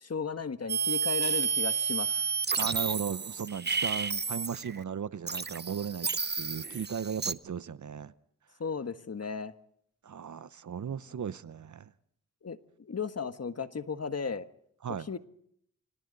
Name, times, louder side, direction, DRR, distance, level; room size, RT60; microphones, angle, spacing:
voice 1, 0.0-2.3 8.6-9.5 12.4-14.5 14.9-15.2, left 5 dB, 50° left, 10 dB, 1.4 m, -35 dB
sound 1, 0.7-4.8 5.3-7.3, right 6 dB, 30° right, 0.8 m, -31 dB
voice 2, 2.6-8.1 10.0-11.9 14.8-15.1, right 7 dB, 65° right, 16 dB, 0.8 m, -36 dB
29.5 x 26.0 x 4.0 m, 0.69 s
cardioid pair, 50°, 32 cm